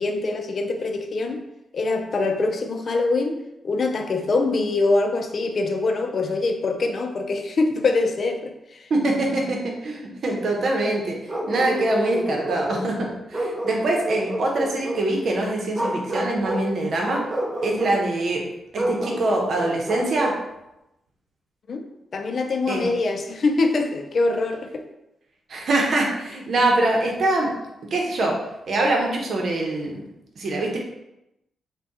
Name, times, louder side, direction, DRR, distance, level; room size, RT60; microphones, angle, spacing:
voice 1, 0.0-1.4 1.7-3.4 3.6-8.8 21.7-21.8 22.1-24.8, left 3 dB, 55° left, 5 dB, 0.5 m, -24 dB
voice 2, 8.9-11.2 11.5-17.2 17.6-18.4 18.7-20.3 22.7-22.9 25.5-27.5 27.9-28.4 28.7-30.0 30.4-30.8, right 2 dB, 65° right, 0 dB, 0.8 m, -23 dB
Bark, 11.3-12.9 13.3-15.1 15.7-16.7 17.0-18.0 18.7-20.4, right 1 dB, 25° right, 0.7 m, -29 dB
3.4 x 2.2 x 4.0 m, 0.89 s
cardioid pair, 65°, 0 cm